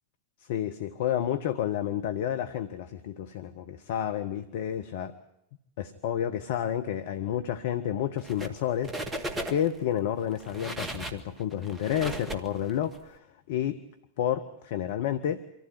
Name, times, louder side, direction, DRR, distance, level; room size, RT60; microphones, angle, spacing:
voice 1, 0.5-5.1 5.8-13.8 14.2-15.4, left 10 dB, 55° left, 8 dB, 1.0 m, -30 dB
sound 1, 8.2-8.6 8.8-9.8 10.3-13.0, right 1 dB, 15° right, 1.9 m, -36 dB
25.0 x 15.0 x 9.7 m, 0.82 s
figure-of-eight pair, 90°, 0 cm